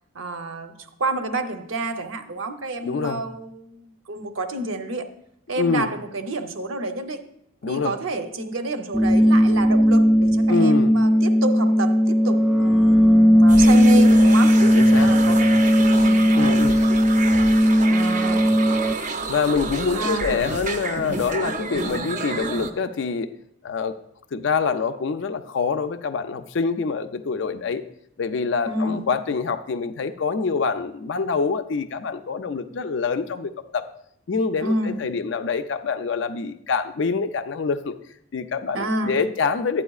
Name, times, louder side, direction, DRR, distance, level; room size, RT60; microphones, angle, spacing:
voice 1, 0.1-5.1 5.5-7.2 7.7-14.7 15.0-16.6 17.9-18.5 19.9-20.4 28.7-29.1 34.6-35.0 38.7-39.2, right 2 dB, 70° right, 7 dB, 0.8 m, -29 dB
voice 2, 2.8-3.2 5.6-5.9 7.6-8.0 10.5-10.9 14.7-15.1 16.4-16.8 19.3-23.3 23.6-23.9 24.3-27.8 28.2-33.8 34.3-38.0 38.3-39.8, left 5 dB, 60° left, 9 dB, 0.4 m, -25 dB
sound 1, 8.9-18.9, equal, ahead, 0.8 m, -16 dB
sound 2, 13.5-22.7, right 3 dB, 35° right, 0.6 m, -30 dB
12.0 x 8.7 x 2.4 m, 0.72 s
head